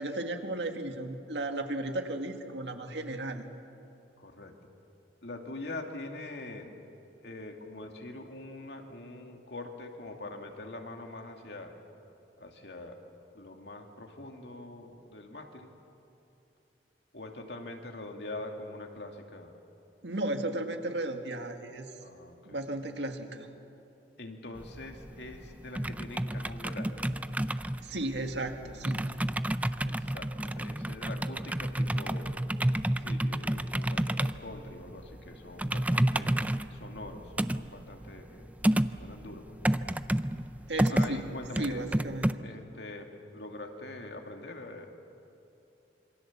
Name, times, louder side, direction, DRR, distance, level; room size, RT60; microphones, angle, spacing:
voice 1, 0.0-3.4 20.0-21.9 22.5-23.5 27.8-29.1 40.7-41.3 41.6-42.4, right 2 dB, 85° right, 5 dB, 2.0 m, -35 dB
voice 2, 4.2-4.7 5.2-6.7 7.2-11.7 12.4-13.0 13.3-15.7 17.1-19.5 22.0-22.6 24.2-27.1 29.8-32.4 33.0-36.3 36.7-38.5 39.0-39.6 40.9-41.8 42.4-44.9, left 2 dB, 70° left, 3 dB, 2.5 m, -44 dB
sound 1, 24.6-42.3, right 1 dB, 10° right, 0.5 m, -30 dB
27.0 x 24.0 x 7.4 m, 2.9 s
head